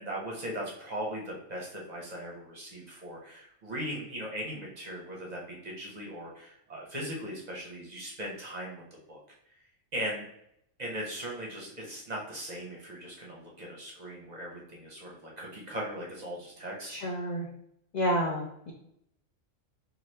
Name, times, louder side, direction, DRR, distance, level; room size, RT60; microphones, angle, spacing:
voice 1, 0.0-8.8 9.1-9.2 9.9-10.3 10.8-17.2, equal, 45° right, -3 dB, 0.6 m, -39 dB
voice 2, 16.9-17.5 17.9-18.7, equal, 75° left, -1 dB, 0.4 m, -30 dB
2.9 x 2.3 x 3.2 m, 0.76 s
omnidirectional pair, 1.3 m